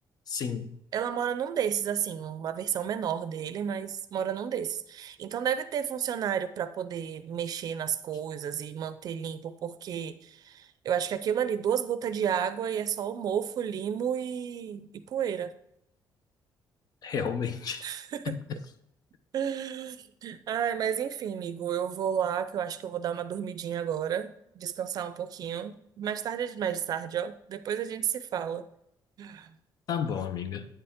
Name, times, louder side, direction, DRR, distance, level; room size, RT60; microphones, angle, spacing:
voice 1, 0.3-0.7 17.0-17.9 18.2-18.4 29.9-30.7, left 7 dB, 55° left, 9 dB, 0.7 m, -32 dB
voice 2, 0.9-15.5 17.8-18.3 19.3-28.7 29.2-29.5, right 8 dB, 55° right, 13 dB, 0.5 m, -32 dB
8.9 x 6.9 x 3.6 m, 0.78 s
cardioid pair, 155°, 8 cm